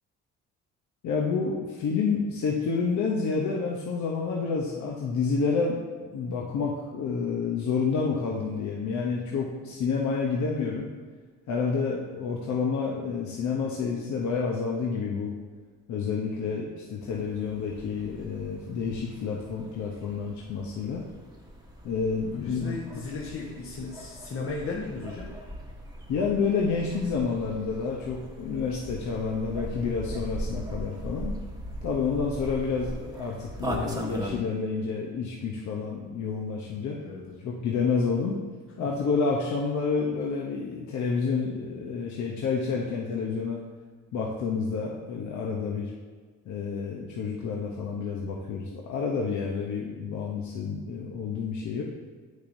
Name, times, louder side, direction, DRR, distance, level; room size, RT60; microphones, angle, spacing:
voice 1, 1.0-10.9 11.5-15.3 15.9-21.0 21.8-22.8 26.1-31.3 31.8-37.0 37.4-38.4 38.8-43.6 44.1-45.9 46.5-51.8, left 5 dB, 70° left, -2 dB, 0.9 m, -29 dB
sound 1, 17.0-34.4, right 1 dB, 10° right, 1.1 m, -39 dB
voice 2, 22.4-25.3 37.0-37.5 38.8-39.1, left 3 dB, 45° left, -3 dB, 1.1 m, -36 dB
8.4 x 6.4 x 2.7 m, 1.4 s
cardioid pair, 90°, 30 cm